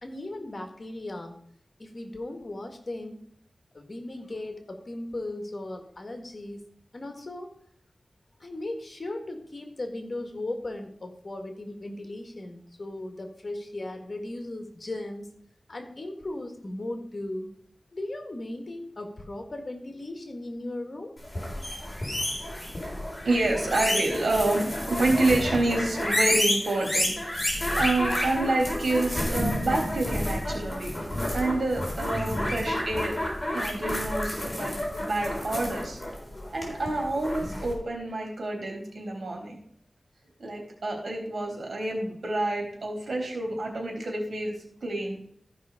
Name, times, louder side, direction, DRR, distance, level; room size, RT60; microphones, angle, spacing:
voice 1, 0.0-1.3 1.8-3.2 3.7-6.6 6.9-7.5 8.4-15.3 15.7-17.5 17.9-21.1, left 1 dB, 50° left, 4 dB, 1.7 m, -37 dB
sound 1, 21.2-37.7, left 1 dB, 20° left, 3.8 m, -30 dB
voice 2, 23.2-27.1 27.8-30.9 31.3-33.2 33.5-36.0 36.5-39.6 40.4-45.2, right 2 dB, 80° right, 0 dB, 3.3 m, -28 dB
14.0 x 5.5 x 4.9 m, 0.66 s
wide cardioid pair, 80°, 0 cm